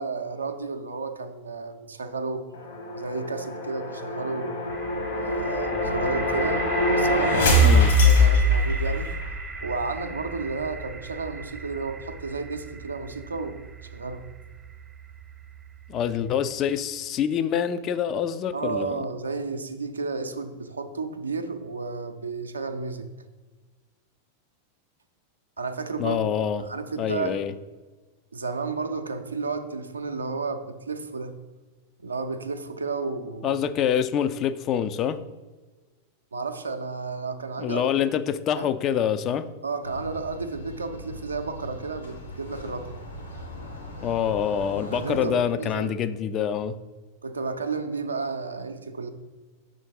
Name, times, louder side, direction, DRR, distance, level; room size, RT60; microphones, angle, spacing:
voice 1, 0.0-2.5 2.9-4.6 5.2-9.1 9.6-13.6 13.9-14.2 18.5-23.1 25.6-26.2 26.7-27.4 28.3-31.3 32.0-33.6 36.3-37.9 38.6-38.7 39.6-43.0 44.9-45.9 47.2-49.1, right 4 dB, 75° right, 8 dB, 0.5 m, -32 dB
sound 1, 2.6-9.3, left 1 dB, 65° left, 1.6 m, -22 dB
sound 2, 4.7-16.5, right 4 dB, 20° right, 0.5 m, -37 dB
voice 2, 7.6-7.9 15.9-19.0 26.0-26.7 27.0-27.5 33.4-35.2 37.6-39.5 44.0-46.8, left 8 dB, 35° left, 12 dB, 0.3 m, -26 dB
sound 3, 39.8-45.3, left 1 dB, 90° left, 1.4 m, -40 dB
5.7 x 3.7 x 5.3 m, 1.3 s
figure-of-eight pair, 90°, 0 cm